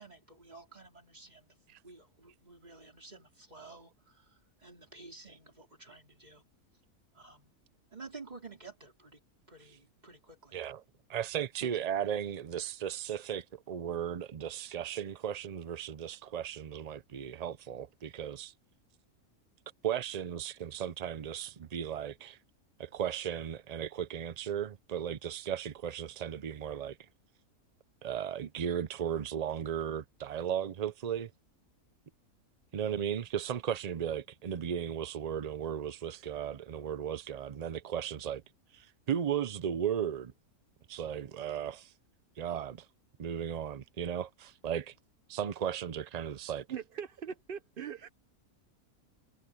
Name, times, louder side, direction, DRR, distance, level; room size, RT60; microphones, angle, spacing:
voice 1, 0.0-1.6 1.8-6.4 7.1-7.5 7.9-9.2 9.5-10.6, right 3 dB, 30° right, 3.4 m, -52 dB
voice 2, 10.5-10.8 11.1-18.5 19.8-22.4 22.8-27.0 28.0-31.3 32.7-38.4 38.7-40.3 40.9-41.9 42.4-42.9 43.2-44.9 45.3-46.7, right 9 dB, 90° right, 0.3 m, -36 dB
voice 3, 46.7-48.1, right 7 dB, 45° right, 0.8 m, -41 dB
omnidirectional pair, 1.6 m